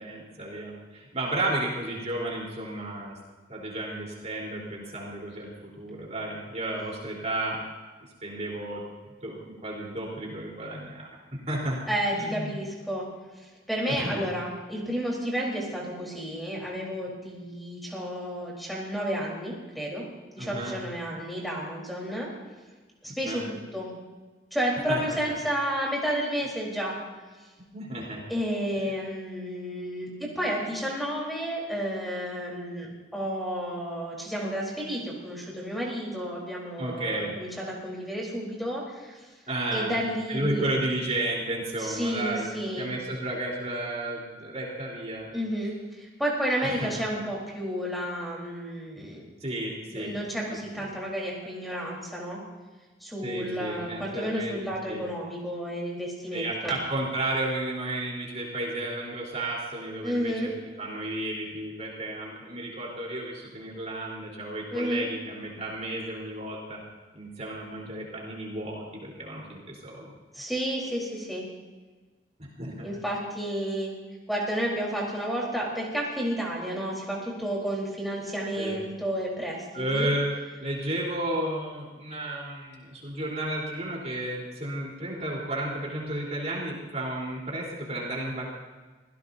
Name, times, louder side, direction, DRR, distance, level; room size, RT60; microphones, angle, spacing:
voice 1, 0.0-3.1 3.5-7.6 8.0-11.8 12.1-12.5 13.9-14.2 20.4-20.8 23.1-23.4 24.9-25.4 27.7-28.2 36.8-37.3 39.5-40.0 40.3-42.5 42.8-45.3 46.6-46.9 49.4-50.2 50.5-50.9 53.2-54.6 54.9-55.0 56.3-60.5 60.8-66.8 67.1-70.1 72.6-72.9 78.5-78.8 79.7-80.3 80.6-88.5, right 1 dB, 40° right, -3 dB, 3.9 m, -33 dB
voice 2, 11.9-13.1 13.7-20.0 20.3-22.3 23.0-23.9 24.5-26.9 28.3-39.3 39.7-40.7 41.8-42.9 45.3-49.2 49.9-52.4 53.0-56.7 60.0-60.5 64.7-65.1 70.3-71.4 72.8-73.9 74.3-80.1, equal, ahead, -4 dB, 4.0 m, -31 dB
26.0 x 17.0 x 2.8 m, 1.3 s
head